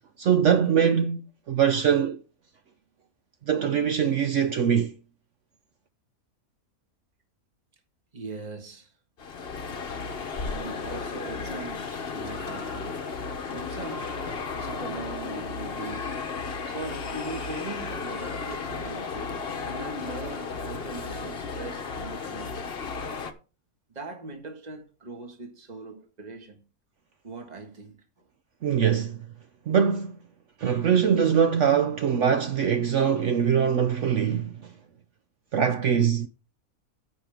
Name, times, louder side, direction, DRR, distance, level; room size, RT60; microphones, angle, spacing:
voice 1, 0.2-1.2 1.5-2.2 3.5-5.0 28.6-29.3 29.7-30.1 30.6-34.6 35.5-36.3, right 7 dB, 60° right, 0.9 m, -22 dB
voice 2, 8.1-8.9 10.4-13.1 13.5-14.1 14.5-16.1 16.7-22.7 23.9-26.6 27.2-28.0 28.9-29.0, right 3 dB, 30° right, 1.7 m, -40 dB
sound 1, 9.2-23.3, left 4 dB, 45° left, 1.1 m, -34 dB
15.0 x 5.4 x 3.5 m
omnidirectional pair, 1.5 m